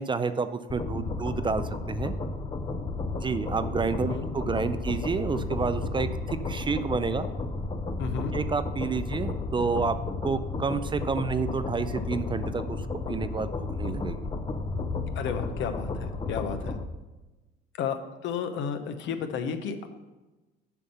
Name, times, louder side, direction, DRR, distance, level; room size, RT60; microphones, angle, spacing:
voice 1, 0.0-2.1 3.2-7.3 8.3-10.0 10.2-12.8 13.1-14.3, right 5 dB, 25° right, 12 dB, 0.4 m, -29 dB
sound 1, 0.7-16.8, left 3 dB, 25° left, 0.7 m, -33 dB
voice 2, 8.0-8.3 15.1-16.8 17.8-19.9, left 6 dB, 65° left, 8 dB, 0.9 m, -32 dB
7.2 x 5.4 x 5.5 m, 1.1 s
supercardioid pair, 85°, 21 cm